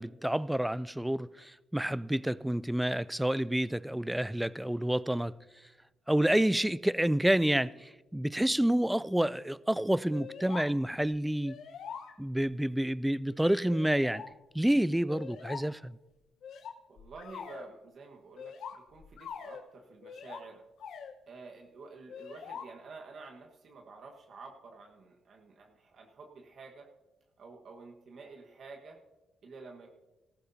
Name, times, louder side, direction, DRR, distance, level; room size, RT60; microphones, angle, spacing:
voice 1, 0.0-5.3 6.1-11.5 12.2-14.2 14.5-16.0, right 1 dB, 5° right, 0.3 m, -29 dB
sound 1, 10.1-10.7 11.0-11.1 11.4-12.4 13.3-14.3 15.1-15.7 16.4-17.7 18.4-19.7 20.0-20.4 20.8-21.1 22.1-22.7, left 7 dB, 75° left, 1.0 m, -44 dB
voice 2, 16.9-20.6 21.3-26.9 27.4-29.0 29.4-29.9, right 4 dB, 55° right, 1.4 m, -50 dB
18.5 x 14.5 x 2.7 m
cardioid pair, 90°, 0 cm